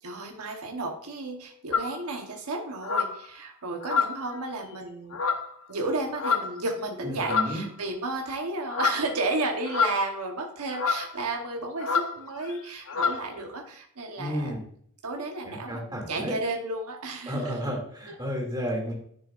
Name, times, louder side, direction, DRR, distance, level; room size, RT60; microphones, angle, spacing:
voice 1, 0.0-5.2 5.7-14.6 15.0-17.6 18.1-18.2, right 2 dB, 85° right, 3 dB, 1.0 m, -33 dB
sound 1, 1.7-2.0 2.8-3.2 3.8-4.4 5.1-5.5 6.1-6.6 7.2-7.6 8.7-9.1 9.7-10.2 10.7-11.1 11.8-12.1 12.4-12.6 12.9-13.2, left 5 dB, 65° left, 1.0 m, -27 dB
voice 2, 7.0-7.6 14.2-14.6 15.4-16.3 17.3-18.9, equal, 20° right, 0 dB, 2.3 m, -32 dB
10.5 x 6.7 x 2.4 m, 0.63 s
head